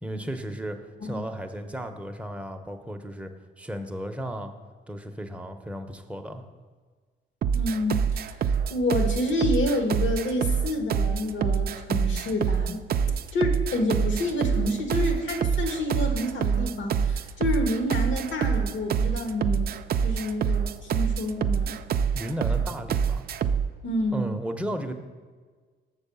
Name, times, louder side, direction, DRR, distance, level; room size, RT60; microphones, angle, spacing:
voice 1, 0.0-4.5 4.9-6.4 22.1-23.2 24.1-24.9, equal, 5° right, 5 dB, 0.7 m, -34 dB
sound 1, 7.4-23.7, right 7 dB, 50° right, 0.4 m, -26 dB
voice 2, 7.5-8.4 8.7-19.7 20.0-21.8 23.8-24.3, left 1 dB, 70° left, 3 dB, 1.5 m, -28 dB
6.7 x 4.7 x 6.8 m, 1.5 s
cardioid pair, 90°, 20 cm